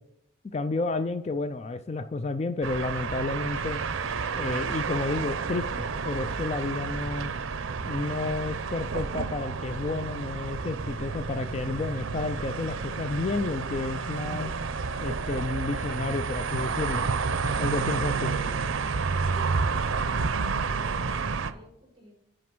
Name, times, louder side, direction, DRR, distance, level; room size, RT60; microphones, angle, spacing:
voice 1, 0.5-3.8 4.3-7.3 7.9-14.5 15.0-17.1 17.6-18.3, left 3 dB, 30° left, 10 dB, 0.4 m, -31 dB
sound 1, 2.6-21.5, right 4 dB, 80° right, 0.6 m, -30 dB
voice 2, 19.5-22.1, equal, 25° right, -2 dB, 4.1 m, -51 dB
9.4 x 5.0 x 6.0 m, 0.77 s
head